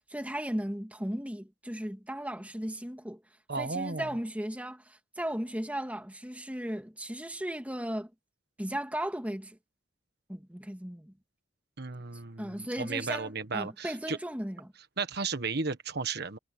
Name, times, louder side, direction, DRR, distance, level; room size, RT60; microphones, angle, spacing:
voice 1, 0.1-3.2 3.6-8.1 8.6-9.6 10.3-11.1 12.4-14.7, equal, 10° right, 2.3 m, -36 dB
voice 2, 3.5-4.1 11.8-14.2 15.0-16.4, right 4 dB, 60° right, 1.4 m, -34 dB
head